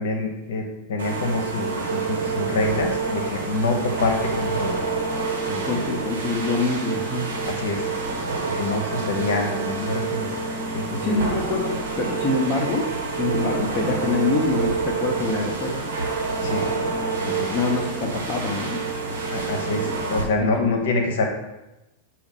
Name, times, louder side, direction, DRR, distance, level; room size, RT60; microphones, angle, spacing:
voice 1, 0.0-4.8 5.5-6.0 7.4-7.9 8.5-10.3 10.7-11.3 16.4-16.6 17.2-17.5 19.3-21.2, left 3 dB, 60° left, 3 dB, 1.0 m, -26 dB
sound 1, 1.0-20.2, right 4 dB, 65° right, 1.2 m, -27 dB
voice 2, 5.6-7.3 11.0-12.9 13.1-15.7 17.5-18.8 20.4-20.9, left 3 dB, 25° left, -1 dB, 1.0 m, -25 dB
6.9 x 2.6 x 5.4 m, 0.98 s
figure-of-eight pair, 90°, 0 cm